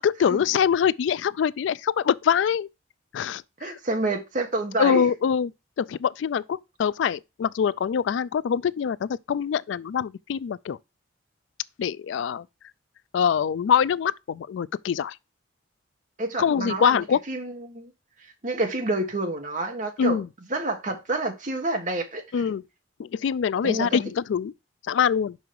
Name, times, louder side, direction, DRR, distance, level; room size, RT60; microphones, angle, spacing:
voice 1, 0.0-2.7 3.1-3.8 4.8-5.5 5.8-10.8 11.8-12.4 13.1-15.1 16.4-17.2 20.0-20.3 22.3-22.6 23.0-24.5 24.9-25.4, left 7 dB, 80° left, 0.3 m, -24 dB
voice 2, 3.6-5.0 16.2-17.9 18.4-20.2 20.5-22.2 23.6-24.0, right 2 dB, 45° right, 1.4 m, -28 dB
5.8 x 5.4 x 4.6 m
head